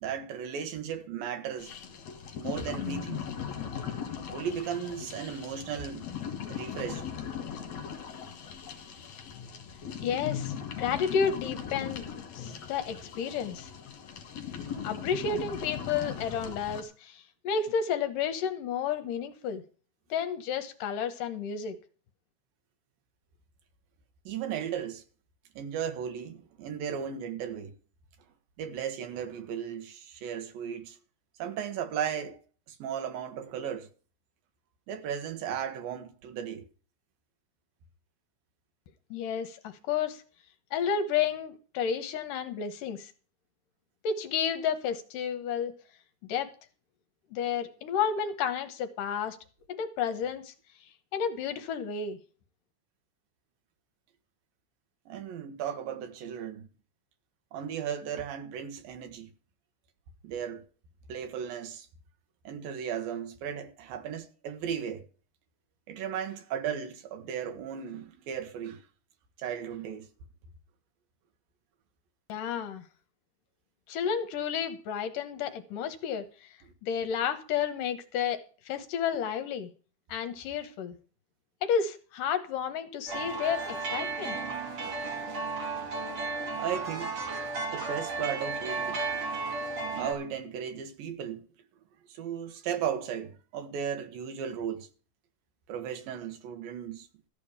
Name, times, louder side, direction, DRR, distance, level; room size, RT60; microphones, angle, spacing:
voice 1, 0.0-1.7 2.4-3.3 4.3-6.1 6.5-7.1 14.7-14.8 24.3-25.0 25.6-27.7 28.6-31.0 31.4-32.4 32.7-33.9 34.9-36.7 55.1-56.7 57.5-59.3 60.2-60.6 61.1-61.9 62.4-65.1 65.9-68.9 69.4-70.1 86.5-87.2 87.7-89.0 89.9-91.4 92.1-94.9 95.7-97.1, right 8 dB, 70° right, 3.0 m, -36 dB
sound 1, 1.6-16.8, left 8 dB, 55° left, 2.8 m, -39 dB
voice 2, 10.0-12.0 12.3-13.7 14.8-19.6 20.1-21.8 39.1-40.2 40.7-43.1 44.0-45.7 46.3-46.5 47.3-49.4 49.7-50.5 51.1-52.2 72.3-72.8 73.9-76.3 76.8-78.4 78.7-79.7 80.1-81.0 81.6-84.4, left 7 dB, 70° left, 2.4 m, -31 dB
sound 2, 83.1-90.1, right 4 dB, 40° right, 3.1 m, -34 dB
14.5 x 5.1 x 8.8 m
omnidirectional pair, 4.4 m